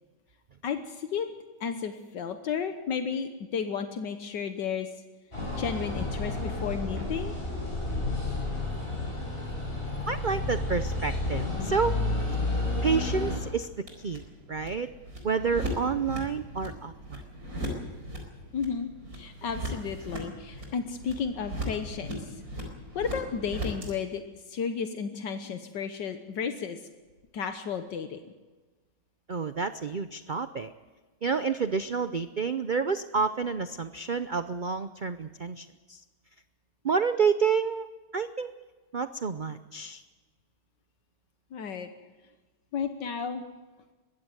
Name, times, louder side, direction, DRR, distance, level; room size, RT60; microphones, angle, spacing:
voice 1, 0.6-1.3 1.6-4.9 5.6-7.3 18.5-22.4 23.0-24.2 24.5-26.8 27.3-28.2 41.5-41.9 42.7-43.4, left 6 dB, 80° left, 8 dB, 1.8 m, -33 dB
sound 1, 5.3-13.4, left 2 dB, 30° left, 6.6 m, -31 dB
voice 2, 10.1-12.0 12.8-14.9 15.2-17.2 29.3-30.7 31.2-36.0 36.8-37.9 38.1-38.5 38.9-40.0, right 5 dB, 75° right, 11 dB, 0.4 m, -29 dB
sound 2, 11.9-23.9, equal, 55° right, 5.0 m, -39 dB
21.5 x 16.0 x 7.9 m, 1.3 s
omnidirectional pair, 1.9 m